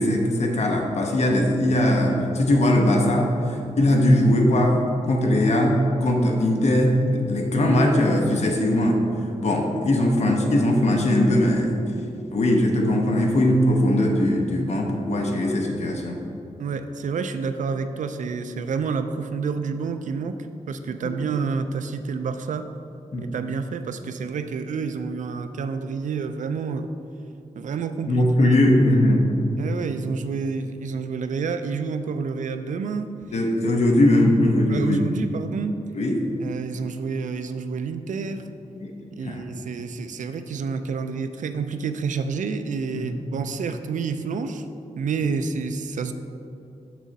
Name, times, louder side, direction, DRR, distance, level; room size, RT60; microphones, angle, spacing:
voice 1, 0.0-4.8 5.1-9.0 9.4-11.7 12.3-16.2 23.1-23.2 28.1-29.4 33.3-35.0 35.9-36.2 38.8-38.9 39.2-39.4 42.9-43.2, left 1 dB, 60° left, 1 dB, 0.9 m, -20 dB
voice 2, 16.6-20.4 20.7-22.7 23.2-26.9 27.6-28.6 29.6-33.1 34.7-35.8 36.4-38.5 39.2-44.7 45.0-46.1, right 5 dB, 85° right, 9 dB, 0.4 m, -29 dB
6.4 x 6.1 x 4.1 m, 2.6 s
wide cardioid pair, 160°, 13 cm